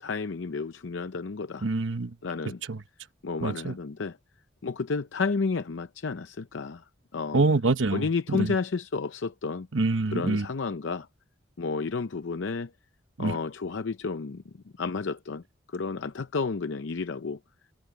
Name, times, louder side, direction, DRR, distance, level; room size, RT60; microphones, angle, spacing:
voice 1, 0.0-1.7 2.2-2.6 3.2-4.2 4.6-6.8 7.1-7.4 7.9-9.7 10.1-11.1 11.6-12.7 13.2-15.4 15.7-17.4, left 4 dB, 75° left, 0.6 m, -31 dB
voice 2, 1.6-2.1 2.7-2.8 3.4-3.7 7.3-8.5 9.7-10.5 13.2-13.4, right 3 dB, 80° right, 1.0 m, -26 dB
head